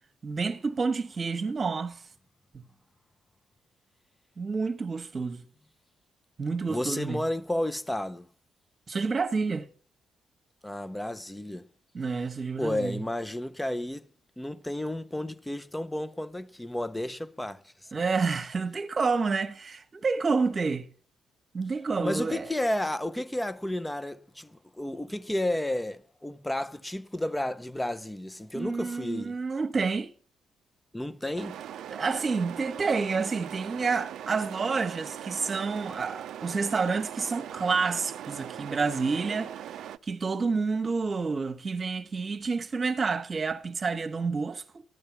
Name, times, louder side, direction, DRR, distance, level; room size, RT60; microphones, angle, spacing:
voice 1, 0.2-2.0 2.5-2.6 4.4-5.4 6.4-7.2 8.9-9.7 11.9-13.0 17.9-20.9 21.5-22.5 28.5-30.1 31.9-44.8, right 4 dB, 35° right, 1.2 m, -29 dB
voice 2, 6.7-8.3 10.6-11.7 12.6-14.1 14.4-17.7 22.0-29.4 30.9-31.6, left 1 dB, 10° left, 0.7 m, -32 dB
sound 1, 31.4-40.0, right 10 dB, 75° right, 0.5 m, -40 dB
12.5 x 8.9 x 5.9 m
cardioid pair, 90°, 0 cm